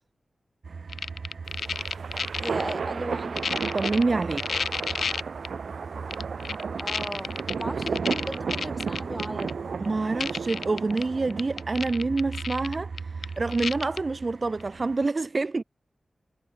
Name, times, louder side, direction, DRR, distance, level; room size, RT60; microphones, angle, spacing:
sound 1, 0.6-15.1, right 4 dB, 70° right, 3.2 m, -40 dB
sound 2, 0.9-2.7 3.2-5.5 6.1-9.5 9.8-9.9 10.2-11.0 11.3-14.0 14.6-14.7, left 5 dB, 85° left, 0.7 m, -31 dB
sound 3, 1.4-11.9, right 5 dB, 85° right, 1.9 m, -34 dB
voice 1, 2.4-3.5 6.7-9.7, right 1 dB, 10° right, 5.4 m, -36 dB
voice 2, 3.7-4.6 9.8-15.6, right 3 dB, 45° right, 0.8 m, -27 dB
wide cardioid pair, 95°, 0 cm